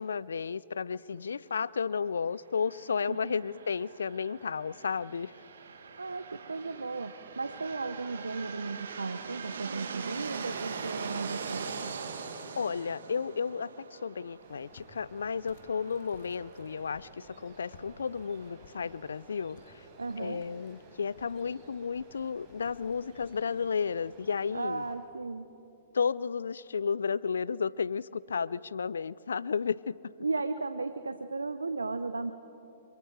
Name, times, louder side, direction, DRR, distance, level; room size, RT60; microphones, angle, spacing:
voice 1, 0.0-5.3 12.5-19.8 20.2-24.8 25.9-30.0, left 6 dB, 75° left, 21 dB, 0.4 m, -33 dB
sound 1, 2.6-20.2, right 5 dB, 70° right, 1.8 m, -43 dB
voice 2, 3.1-3.4 6.0-11.9 20.0-20.4 24.5-25.5 30.2-32.3, right 3 dB, 90° right, 11 dB, 0.7 m, -35 dB
Walk footsteps, 14.2-23.4, left 5 dB, 60° left, 1.9 m, -59 dB
sound 2, 14.4-25.0, right 3 dB, 40° right, 6.0 m, -57 dB
26.5 x 25.0 x 4.7 m, 2.9 s
hypercardioid pair, 115°, 0 cm